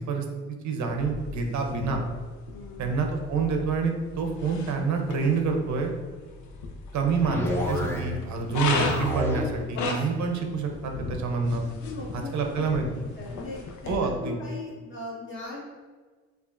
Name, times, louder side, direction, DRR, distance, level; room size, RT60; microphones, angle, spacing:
voice 1, 0.0-2.0 2.8-5.9 6.9-11.6 12.1-13.1 13.9-14.4, right 4 dB, 70° right, 3 dB, 0.6 m, -27 dB
sound 1, 0.9-14.0, left 4 dB, 70° left, 0.6 m, -36 dB
voice 2, 2.5-2.9 11.8-12.6 13.2-15.6, left 3 dB, 40° left, -5 dB, 1.4 m, -39 dB
sound 2, 7.2-8.3 8.6-9.6, equal, 10° left, 0.6 m, -30 dB
4.8 x 2.4 x 2.4 m, 1.4 s
cardioid pair, 90°, 30 cm